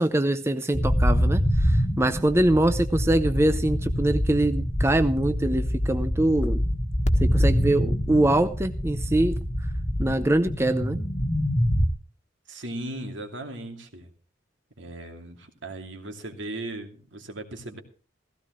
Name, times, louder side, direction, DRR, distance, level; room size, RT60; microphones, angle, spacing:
voice 1, 0.0-6.6 7.2-9.4 10.0-11.0, right 1 dB, 15° right, 10 dB, 0.6 m, -23 dB
sound 1, 0.7-11.9, equal, 35° left, 1.5 m, -25 dB
voice 2, 12.5-14.1 14.8-17.8, right 1 dB, 70° right, 4 dB, 2.7 m, -37 dB
16.5 x 15.5 x 3.1 m, 0.37 s
head